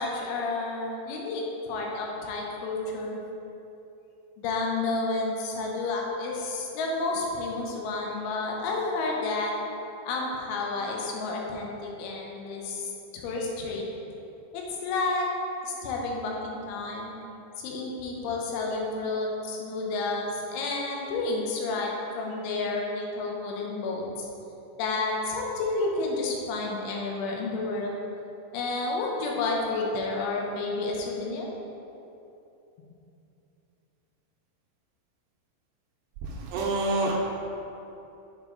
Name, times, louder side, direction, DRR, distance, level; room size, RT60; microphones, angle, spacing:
voice 1, 0.0-3.2 4.4-9.5 10.0-13.9 14.5-15.3 15.6-17.1 17.6-24.3 24.8-28.1 28.5-31.5, left 3 dB, 90° left, -1 dB, 3.3 m, -30 dB
voice 2, 36.5-37.1, right 2 dB, 80° right, -2 dB, 2.6 m, -26 dB
7.9 x 5.0 x 3.7 m, 2.9 s
omnidirectional pair, 5.3 m